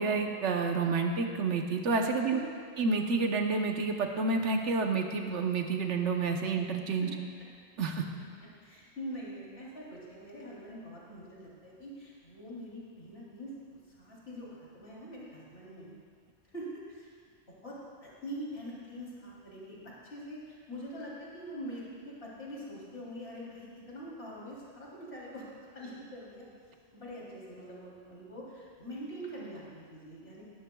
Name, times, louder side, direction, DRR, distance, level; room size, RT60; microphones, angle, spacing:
voice 1, 0.0-2.4 2.8-7.1 7.8-8.0, right 4 dB, 90° right, 3 dB, 1.2 m, -29 dB
voice 2, 8.6-15.9 16.4-17.1 17.6-17.8 18.0-25.4 25.7-26.5 26.9-30.4, equal, 60° left, -6 dB, 3.5 m, -44 dB
19.5 x 14.0 x 2.3 m, 2.1 s
omnidirectional pair, 1.2 m